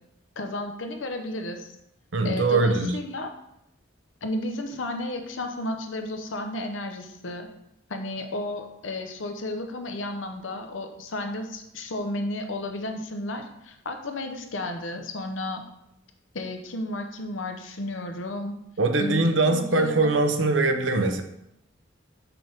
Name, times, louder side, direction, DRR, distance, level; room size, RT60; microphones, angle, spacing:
voice 1, 0.4-1.7 2.2-3.3 4.2-7.5 7.9-15.6 16.3-18.6 19.0-20.1, left 1 dB, 85° left, 5 dB, 0.9 m, -33 dB
voice 2, 2.1-2.9 18.8-21.2, right 3 dB, 75° right, 6 dB, 0.7 m, -22 dB
5.8 x 5.5 x 3.5 m, 0.80 s
head